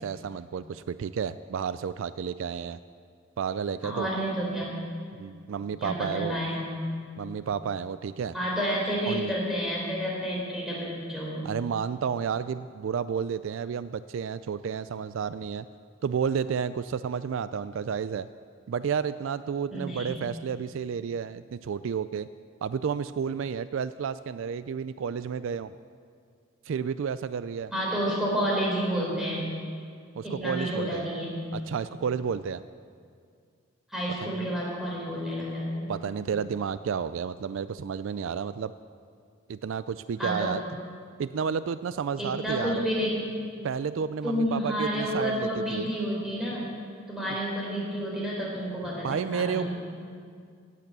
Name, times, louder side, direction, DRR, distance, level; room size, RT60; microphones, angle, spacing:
voice 1, 0.0-2.8 3.4-4.1 5.2-6.4 7.2-8.3 9.1-9.3 11.4-15.7 16.0-18.3 18.7-22.3 22.6-25.7 26.7-27.7 30.2-31.1 31.5-32.6 34.2-34.4 35.9-38.7 39.5-40.6 41.2-42.9 43.6-45.9 47.3-47.4 49.0-49.7, right 6 dB, 70° right, 14 dB, 0.3 m, -31 dB
voice 2, 3.8-4.8 5.8-6.8 8.3-11.5 19.7-20.1 27.7-29.5 30.2-31.5 33.9-35.9 40.2-40.6 42.2-43.2 44.2-46.7 47.1-49.7, equal, ahead, -5 dB, 3.9 m, -30 dB
17.5 x 8.4 x 6.8 m, 2.2 s
head